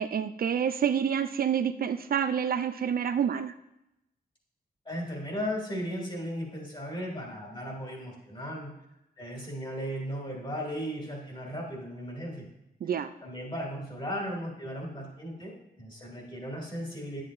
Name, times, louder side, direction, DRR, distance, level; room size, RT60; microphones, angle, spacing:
voice 1, 0.0-3.5 12.8-13.1, right 8 dB, 60° right, 10 dB, 0.4 m, -28 dB
voice 2, 4.8-8.7 9.2-12.5 13.2-17.2, equal, 30° left, -2 dB, 2.6 m, -36 dB
9.8 x 7.6 x 2.5 m, 0.86 s
wide cardioid pair, 105°, 17 cm